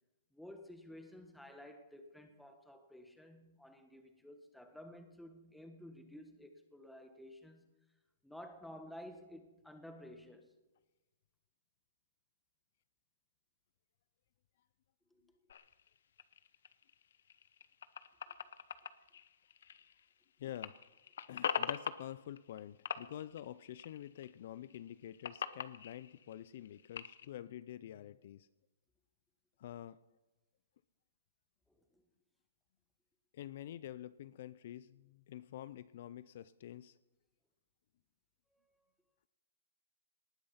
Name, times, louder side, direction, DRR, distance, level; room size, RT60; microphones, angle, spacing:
voice 1, 0.3-7.7 8.2-10.5 15.1-15.4 18.3-18.4 31.7-32.0 38.5-38.8, left 1 dB, ahead, 1.4 m, -53 dB
sound 1, 15.5-20.2 20.5-22.6 22.9-24.3 24.6-27.3, left 8 dB, 70° left, 0.9 m, -43 dB
voice 2, 20.4-20.7 21.3-28.5 29.6-30.0 33.3-37.0, left 11 dB, 50° left, 0.5 m, -47 dB
19.0 x 10.5 x 5.8 m
hypercardioid pair, 155°, 0 cm